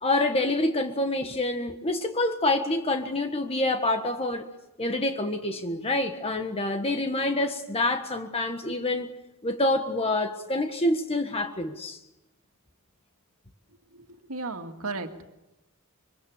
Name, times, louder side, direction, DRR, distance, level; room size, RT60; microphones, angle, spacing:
voice 1, 0.0-4.5 4.8-9.1 9.4-12.0, left 2 dB, 25° left, 5 dB, 1.5 m, -27 dB
voice 2, 13.9-15.2, right 3 dB, 70° right, 5 dB, 2.2 m, -35 dB
26.0 x 24.0 x 7.3 m, 0.95 s
head